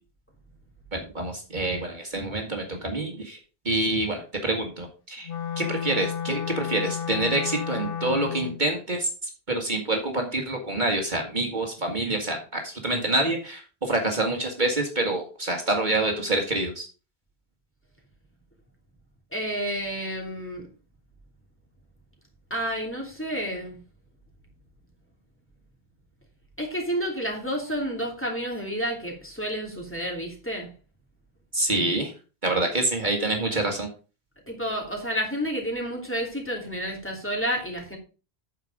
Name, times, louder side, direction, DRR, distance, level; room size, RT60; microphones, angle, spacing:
voice 1, 0.9-3.4 3.7-5.3 5.6-9.1 9.5-16.9 31.5-32.1 32.4-33.9, right 2 dB, 50° right, 2.0 m, -27 dB
Wind instrument woodwind instrument, 5.2-8.6, left 8 dB, 60° left, 1.0 m, -32 dB
voice 2, 19.3-20.7 22.5-23.8 26.6-30.7 34.5-38.0, equal, 10° left, 2.9 m, -30 dB
9.1 x 6.7 x 5.0 m
omnidirectional pair, 1.1 m